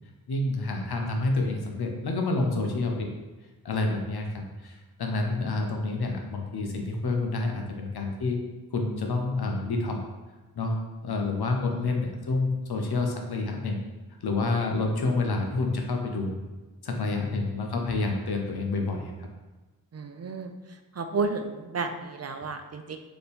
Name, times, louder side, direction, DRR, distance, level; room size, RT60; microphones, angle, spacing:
voice 1, 0.3-3.1 3.6-8.4 8.7-10.0 10.6-13.8 14.2-16.4 16.8-19.3, left 3 dB, 85° left, 2 dB, 0.7 m, -28 dB
voice 2, 19.9-20.5 21.0-23.0, right 4 dB, 45° right, 6 dB, 0.4 m, -32 dB
4.2 x 2.9 x 3.4 m, 1.2 s
wide cardioid pair, 50°, 38 cm